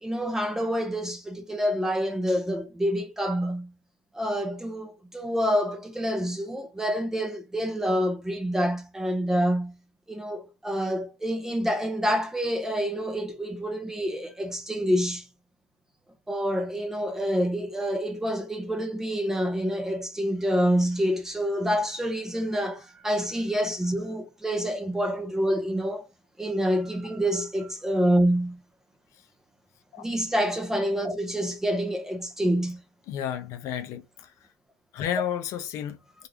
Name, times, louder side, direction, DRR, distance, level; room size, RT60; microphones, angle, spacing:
voice 1, 0.0-3.7 4.1-9.7 10.1-15.2 16.3-26.0 26.4-28.6 30.0-32.8, equal, 5° right, 0.5 m, -27 dB
voice 2, 33.1-34.0 34.9-36.0, left 10 dB, 45° left, 0.6 m, -31 dB
3.3 x 2.4 x 2.8 m
supercardioid pair, 145°, 7 cm